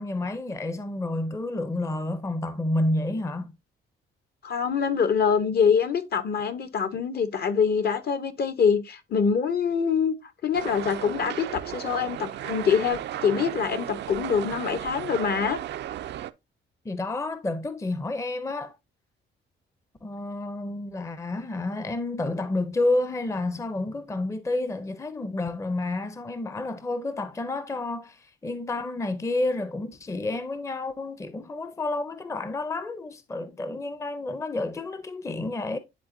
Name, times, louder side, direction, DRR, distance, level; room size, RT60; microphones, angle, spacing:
voice 1, 0.0-3.5 16.8-18.7 20.0-35.8, left 2 dB, 15° left, 0.6 m, -30 dB
voice 2, 4.4-10.2 10.4-15.6, left 6 dB, 50° left, 0.8 m, -25 dB
sound 1, 10.5-16.3, right 12 dB, 60° right, 0.4 m, -35 dB
10.0 x 3.7 x 2.6 m
cardioid pair, 90°, 20 cm